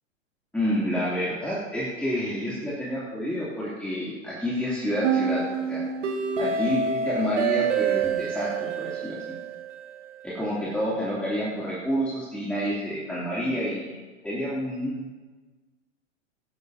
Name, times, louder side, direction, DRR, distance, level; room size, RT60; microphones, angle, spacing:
voice 1, 0.5-5.4 5.7-5.8 6.4-9.3 10.2-13.9 14.2-15.1, equal, 5° left, -9 dB, 2.8 m, -29 dB
sound 1, 5.0-10.1, right 6 dB, 70° right, 1.9 m, -27 dB
17.0 x 11.0 x 2.8 m, 1.3 s
hypercardioid pair, 115°, 38 cm